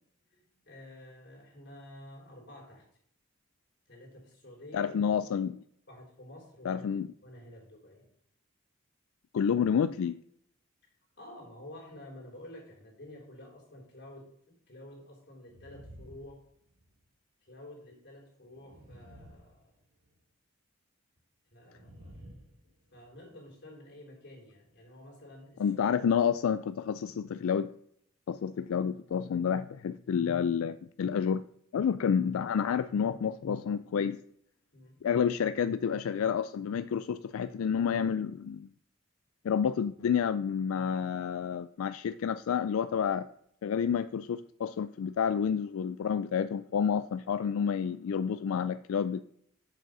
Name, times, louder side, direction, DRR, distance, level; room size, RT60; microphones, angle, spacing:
voice 1, 0.3-2.9 3.9-5.2 5.9-6.9 7.2-8.1 11.2-16.4 17.4-19.8 21.5-22.2 22.9-26.0 34.7-35.1, left 1 dB, 55° left, -2 dB, 3.7 m, -50 dB
voice 2, 4.7-5.6 6.6-7.1 9.3-10.2 25.6-27.7 28.3-31.4 31.7-34.2 35.0-38.7 39.4-43.3 43.6-49.2, left 7 dB, 85° left, 13 dB, 0.3 m, -29 dB
sound 1, 15.4-17.0 18.4-20.1 21.7-23.2, equal, 80° right, 1.4 m, -53 dB
7.3 x 5.4 x 6.6 m, 0.68 s
head